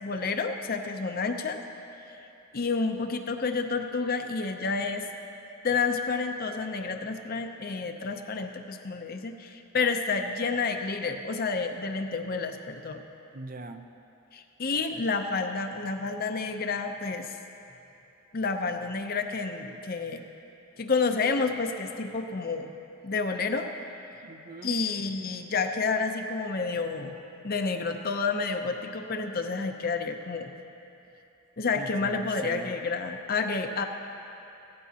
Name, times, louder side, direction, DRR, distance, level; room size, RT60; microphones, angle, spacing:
voice 1, 0.0-1.6 2.5-5.1 5.6-13.0 14.3-17.3 18.3-20.2 20.8-22.7 23.0-23.7 24.6-27.2 27.4-30.5 31.6-33.9, left 4 dB, 45° left, 6 dB, 0.6 m, -30 dB
voice 2, 13.3-13.8 24.2-24.8 31.8-32.7, right 3 dB, 40° right, 8 dB, 0.5 m, -40 dB
15.5 x 15.0 x 2.8 m, 2.9 s
head